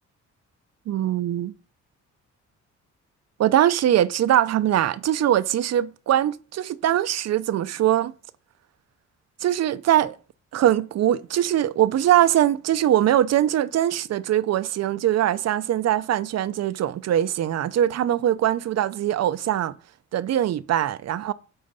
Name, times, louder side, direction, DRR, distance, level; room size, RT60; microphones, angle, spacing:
voice 1, 0.9-1.5 3.4-8.1 9.4-10.2 10.5-19.7 20.1-21.3, right 11 dB, 60° right, 0.6 m, -22 dB
9.0 x 3.9 x 5.3 m
cardioid pair, 90°, 30 cm